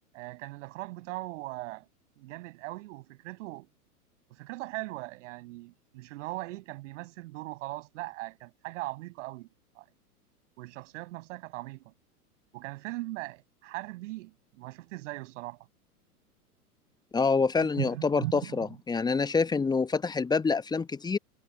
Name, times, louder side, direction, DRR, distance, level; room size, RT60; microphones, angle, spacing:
voice 1, 0.1-1.9 2.2-3.7 4.3-9.5 9.7-9.8 10.6-11.9 12.5-15.7 17.5-18.8, right 20 dB, 50° right, 6.8 m, -39 dB
voice 2, 17.1-21.2, left 4 dB, 10° left, 1.0 m, -26 dB
figure-of-eight pair, 105°, 46 cm